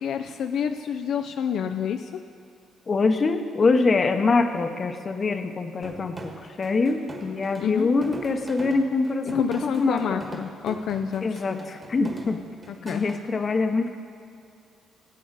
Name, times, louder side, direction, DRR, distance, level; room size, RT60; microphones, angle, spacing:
voice 1, 0.0-2.1 7.6-7.9 9.3-11.6 12.7-13.0, left 8 dB, 75° left, 7 dB, 0.4 m, -28 dB
voice 2, 2.9-6.3 6.6-10.2 11.2-12.4 12.8-13.9, left 3 dB, 40° left, 7 dB, 0.8 m, -24 dB
sound 1, 5.8-13.2, right 2 dB, 25° right, 1.6 m, -42 dB
16.5 x 8.4 x 4.0 m, 2.4 s
cardioid pair, 90°, 0 cm